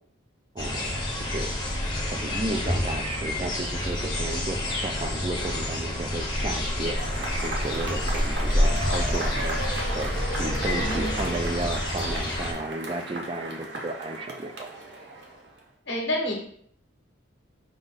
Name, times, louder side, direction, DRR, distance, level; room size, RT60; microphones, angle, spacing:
voice 1, 0.5-0.9 1.2-1.5 2.1-7.0 7.4-9.6 9.9-14.7, right 2 dB, 25° right, 6 dB, 0.3 m, -33 dB
sound 1, 0.6-12.5, left 1 dB, 20° left, 0.7 m, -28 dB
Cheering / Applause / Crowd, 6.9-15.6, right 1 dB, 55° right, 0.7 m, -35 dB
voice 2, 10.8-11.2 15.9-16.3, left 1 dB, 55° left, -2 dB, 1.0 m, -29 dB
5.0 x 2.3 x 3.9 m, 0.63 s
head